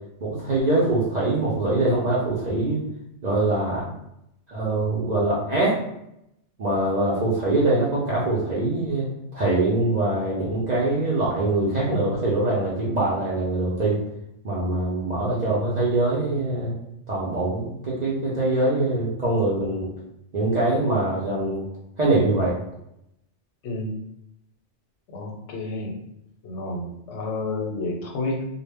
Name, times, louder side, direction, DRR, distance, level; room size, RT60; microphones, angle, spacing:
voice 1, 0.2-2.8 3.2-3.9 4.5-5.8 6.6-14.0 14.4-16.7 17.1-19.9 20.3-21.6 22.0-22.5, right 2 dB, 55° right, -6 dB, 0.5 m, -23 dB
voice 2, 25.1-26.0 26.4-28.5, left 2 dB, 90° left, 1 dB, 0.9 m, -30 dB
2.0 x 2.0 x 3.3 m, 0.81 s
omnidirectional pair, 1.2 m